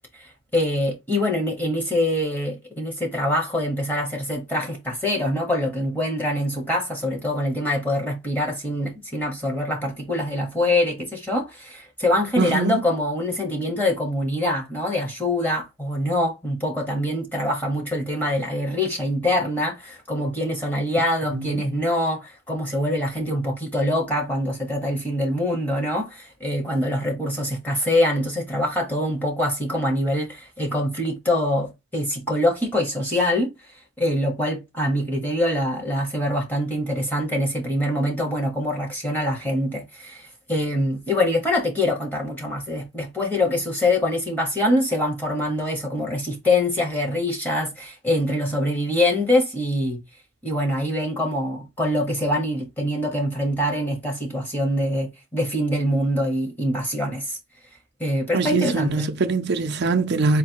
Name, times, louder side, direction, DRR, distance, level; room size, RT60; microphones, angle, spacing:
voice 1, 0.2-33.5 34.0-50.0 50.4-57.4 58.0-59.1, left 1 dB, 10° left, 1.2 m, -24 dB
voice 2, 12.4-12.8 58.3-60.4, right 3 dB, 55° right, 0.5 m, -22 dB
4.1 x 2.2 x 4.5 m
head